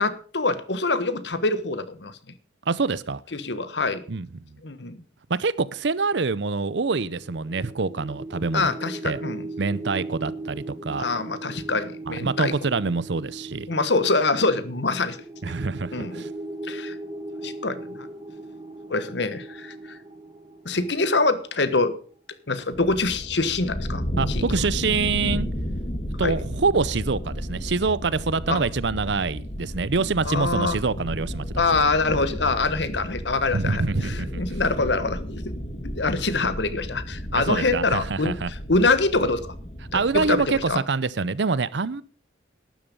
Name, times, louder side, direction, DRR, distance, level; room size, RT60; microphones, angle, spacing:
voice 1, 0.0-2.2 3.3-4.0 4.6-5.0 8.5-9.4 11.0-12.5 13.7-15.2 15.9-16.2 16.7-17.0 17.4-18.1 18.9-20.0 20.6-21.9 22.5-24.4 26.2-26.3 28.5-28.6 30.2-30.8 31.6-35.4 36.0-39.5 39.9-40.8, left 3 dB, 65° left, 1.3 m, -25 dB
voice 2, 2.7-3.2 4.1-4.3 5.3-8.7 9.0-9.2 9.6-11.1 12.1-13.7 15.4-16.3 24.2-25.5 26.2-31.6 33.5-34.4 37.3-38.5 39.9-42.0, right 4 dB, 70° right, 0.7 m, -25 dB
sound 1, 6.9-21.8, right 2 dB, 25° right, 1.9 m, -38 dB
sound 2, 22.7-40.6, equal, 35° left, 2.2 m, -33 dB
12.5 x 10.5 x 5.3 m
head